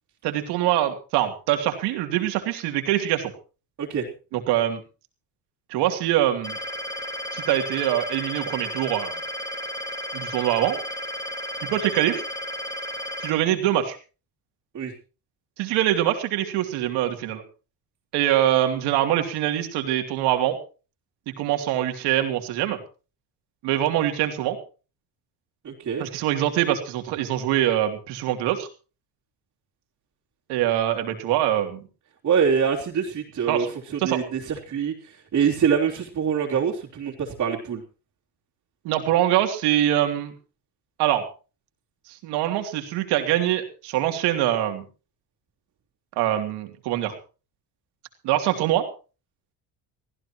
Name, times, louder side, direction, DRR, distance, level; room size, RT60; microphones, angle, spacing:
voice 1, 0.2-3.3 4.3-4.8 5.7-6.6 7.3-9.1 10.1-10.8 11.6-12.2 13.2-14.0 15.6-17.4 18.1-20.6 21.4-22.8 23.6-24.6 26.0-28.7 30.5-31.8 33.5-33.7 34.0-34.2 38.8-40.3 41.0-41.2 42.2-44.8 46.2-47.1 48.2-48.9, right 12 dB, 85° right, 6 dB, 3.1 m, -23 dB
sound 1, 6.4-13.3, left 1 dB, 10° left, 3.8 m, -33 dB
voice 2, 25.6-26.0 32.2-33.7 33.9-37.8, right 7 dB, 45° right, -5 dB, 3.2 m, -24 dB
24.0 x 15.5 x 3.1 m, 0.35 s
cardioid pair, 120°, 39 cm